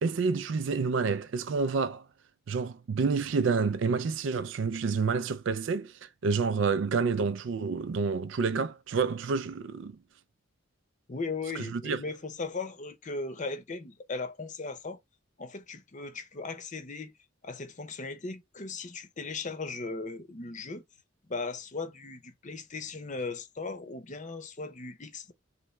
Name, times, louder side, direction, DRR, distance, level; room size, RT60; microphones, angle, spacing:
voice 1, 0.0-2.1 2.5-9.9 11.6-12.0, right 5 dB, 65° right, 0.4 m, -29 dB
voice 2, 11.1-15.0 15.4-17.1 17.4-20.8 21.3-25.3, left 3 dB, 40° left, 0.7 m, -37 dB
3.2 x 3.2 x 4.3 m
head